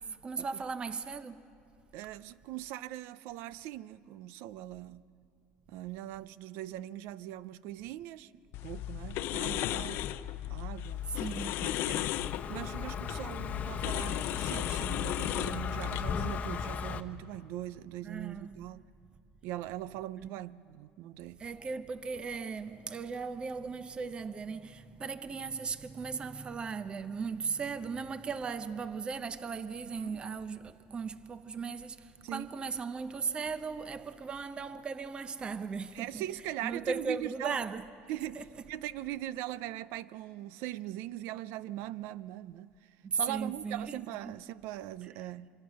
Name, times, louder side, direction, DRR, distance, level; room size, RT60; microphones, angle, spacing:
voice 1, 0.1-1.4 11.1-11.7 18.0-18.6 20.2-20.4 21.4-36.2 36.6-37.8 38.2-38.4 43.0-44.0 44.2-44.4, right 5 dB, 25° right, 0.7 m, -37 dB
voice 2, 1.9-5.0 5.7-8.3 8.6-10.1 10.5-12.1 12.5-18.8 19.4-21.4 30.0-30.2 32.2-32.5 35.9-37.6 38.1-45.5, right 14 dB, 75° right, 0.6 m, -41 dB
sound 1, 8.5-16.2, left 13 dB, 65° left, 0.6 m, -35 dB
Car passing by, 11.0-17.0, left 7 dB, 35° left, 0.9 m, -38 dB
25.5 x 24.5 x 6.3 m
cardioid pair, 130°, 4 cm